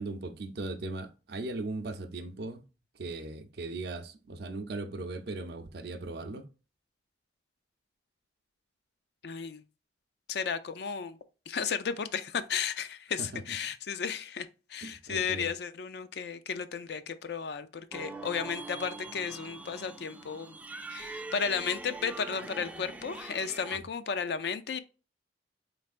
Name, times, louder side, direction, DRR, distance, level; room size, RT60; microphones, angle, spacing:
voice 1, 0.0-2.6 2.9-6.5 13.2-13.4 14.8-15.5 23.7-23.8, right 2 dB, 60° right, 0.5 m, -38 dB
voice 2, 9.2-9.6 10.3-11.2 11.5-20.6 20.9-24.8, left 6 dB, 60° left, 0.4 m, -34 dB
sound 1, 17.9-23.8, right 3 dB, 10° right, 0.3 m, -43 dB
4.3 x 3.2 x 2.4 m
head